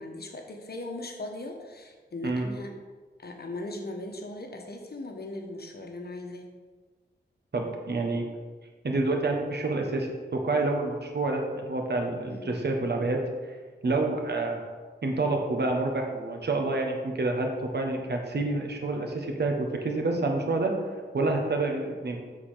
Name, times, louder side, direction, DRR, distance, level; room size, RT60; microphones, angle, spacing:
voice 1, 0.0-2.7 3.2-6.5 12.3-12.6, left 2 dB, 60° left, 2 dB, 1.1 m, -39 dB
voice 2, 7.5-8.2 8.8-13.2 13.8-14.6 15.0-20.7 21.1-22.2, right 2 dB, 65° right, 2 dB, 1.4 m, -28 dB
7.8 x 4.2 x 6.5 m, 1.4 s
wide cardioid pair, 65°, 19 cm